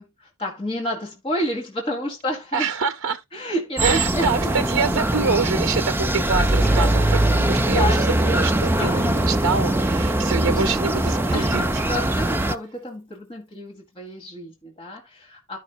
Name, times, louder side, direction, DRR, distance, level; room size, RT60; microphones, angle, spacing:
voice 1, 0.0-2.7 3.3-4.5 7.2-8.5 8.8-9.1 10.4-10.6 11.3-15.6, equal, 25° left, 1.8 m, -30 dB
voice 2, 2.5-3.2 3.8-11.8, right 5 dB, 60° right, 0.6 m, -26 dB
sound 1, 3.8-12.5, right 1 dB, 10° right, 0.4 m, -21 dB
Gurgling / Trickle dribble / Fill (with liquid), 5.6-11.8 12.1-12.2 12.4-12.6 12.9-13.0, right 1 dB, 5° left, 5.0 m, -45 dB
13.0 x 5.4 x 2.4 m
head